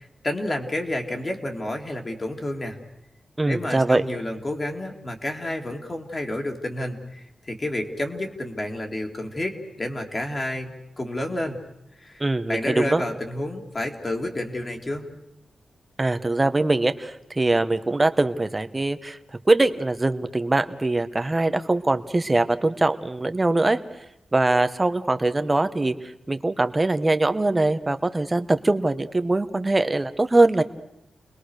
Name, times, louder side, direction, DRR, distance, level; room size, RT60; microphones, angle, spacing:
voice 1, 0.0-2.8 3.4-11.6 12.0-15.1, left 1 dB, 30° left, 2 dB, 2.9 m, -30 dB
voice 2, 3.4-4.0 12.2-13.0 16.0-19.2 19.5-23.8 24.3-30.6, right 2 dB, 20° right, 9 dB, 1.2 m, -22 dB
30.0 x 21.0 x 6.6 m, 0.85 s
wide cardioid pair, 130°, 0 cm